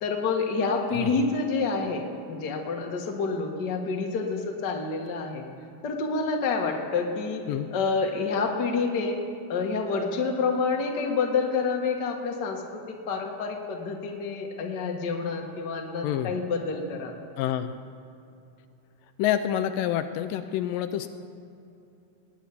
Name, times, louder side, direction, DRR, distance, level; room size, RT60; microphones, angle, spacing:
voice 1, 0.0-2.0 2.3-5.4 5.8-7.4 7.7-9.2 9.5-17.1, left 4 dB, 45° left, 1 dB, 1.5 m, -28 dB
voice 2, 17.4-17.7 19.2-21.1, left 11 dB, 85° left, 9 dB, 2.2 m, -27 dB
20.0 x 7.2 x 9.5 m, 2.7 s
omnidirectional pair, 4.1 m